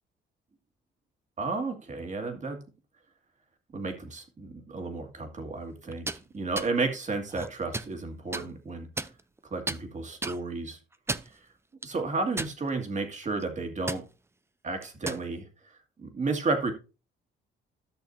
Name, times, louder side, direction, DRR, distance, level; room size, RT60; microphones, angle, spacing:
voice 1, 1.4-2.6 3.7-6.1 6.3-8.9 9.5-10.8 11.8-14.0 14.6-15.5 16.0-16.7, right 3 dB, 35° right, 6 dB, 2.2 m, -32 dB
sound 1, 5.9-6.2 6.6-6.7 7.3-7.9 8.3-8.5 9.0-9.4 9.7-9.8 10.2-10.4 10.9-11.4 11.8-11.9 12.4-12.9 13.2-13.4 13.9-14.0 14.8-15.2, right 2 dB, 15° right, 0.5 m, -33 dB
13.0 x 6.4 x 2.7 m, 0.31 s
cardioid pair, 90°, 20 cm